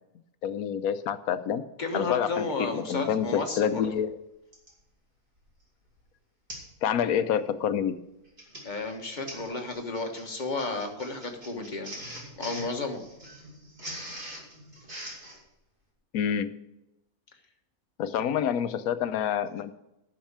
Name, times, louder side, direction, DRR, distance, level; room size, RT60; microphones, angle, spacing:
voice 1, 0.4-1.6 1.9-4.1 6.8-8.0 16.1-16.5 18.0-19.7, left 8 dB, 90° left, 12 dB, 1.2 m, -27 dB
voice 2, 1.8-3.8 8.6-12.0 12.4-13.0, left 3 dB, 35° left, 3 dB, 1.4 m, -32 dB
Printer, 3.3-3.4 4.5-4.8 5.4-5.6 5.9-6.0 6.5-6.8 7.1-7.4 8.1-15.4, equal, 40° right, 2.7 m, -43 dB
10.5 x 6.4 x 7.3 m, 0.88 s
omnidirectional pair, 1.5 m